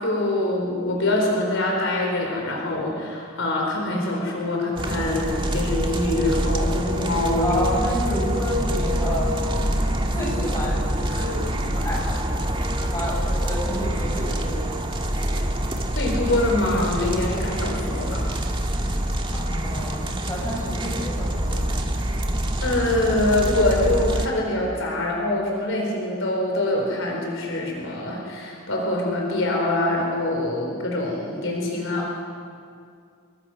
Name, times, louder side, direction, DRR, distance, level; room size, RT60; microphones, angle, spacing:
voice 1, 0.0-7.5 15.9-18.3 22.6-32.1, left 1 dB, 60° left, -1 dB, 4.7 m, -24 dB
sound 1, 4.8-24.3, right 1 dB, 25° right, 1.9 m, -25 dB
voice 2, 7.4-9.5 10.0-12.3 12.7-14.6 19.3-21.7 31.9-32.1, equal, 15° left, -3 dB, 7.7 m, -30 dB
29.5 x 23.0 x 6.4 m, 2.3 s
head